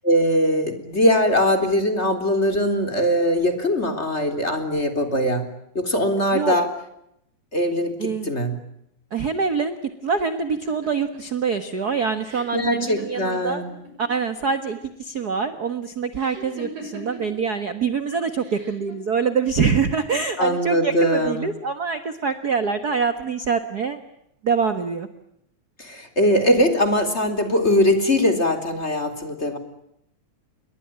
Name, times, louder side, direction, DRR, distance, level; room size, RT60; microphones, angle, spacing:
voice 1, 0.0-5.5 5.7-6.7 7.5-8.6 12.5-13.8 20.4-21.5 25.8-29.6, equal, 20° left, 7 dB, 3.7 m, -21 dB
voice 2, 8.0-8.3 9.1-9.7 10.0-13.6 14.0-24.0 24.4-25.1, right 5 dB, 40° right, 10 dB, 1.5 m, -25 dB
sound 1, 10.5-14.1 14.4-15.1 16.2-17.4 18.4-18.9, right 1 dB, 90° right, 8.2 m, -40 dB
29.0 x 23.0 x 8.9 m, 0.77 s
omnidirectional pair, 3.4 m